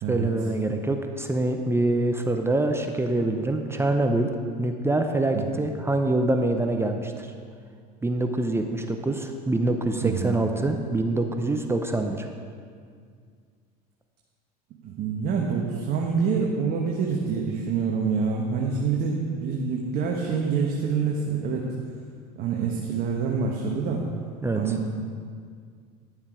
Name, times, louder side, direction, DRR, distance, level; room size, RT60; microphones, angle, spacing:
voice 1, 0.1-4.3 4.6-7.3 8.0-12.3 24.4-24.6, right 2 dB, 10° right, 5 dB, 0.7 m, -25 dB
voice 2, 10.0-10.4 14.8-21.7 22.4-24.0 24.5-24.8, right 5 dB, 50° right, -1 dB, 1.2 m, -26 dB
11.0 x 7.2 x 4.9 m, 2.1 s
supercardioid pair, 90°, 20 cm